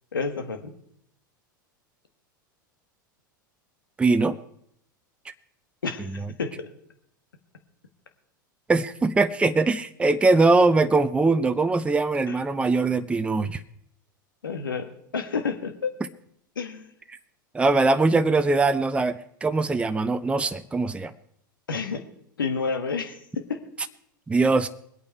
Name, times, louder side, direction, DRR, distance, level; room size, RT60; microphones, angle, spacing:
voice 1, 0.1-0.7 5.8-6.5 12.3-12.4 14.4-15.9 16.5-16.9 21.7-22.0 22.4-23.6, left 5 dB, 80° left, 7 dB, 1.6 m, -30 dB
voice 2, 4.0-4.4 5.3-5.4 6.2-6.3 8.7-13.6 17.5-21.1 24.3-24.7, right 3 dB, 10° right, 10 dB, 0.6 m, -22 dB
21.5 x 8.6 x 4.6 m, 0.71 s
figure-of-eight pair, 90°, 11 cm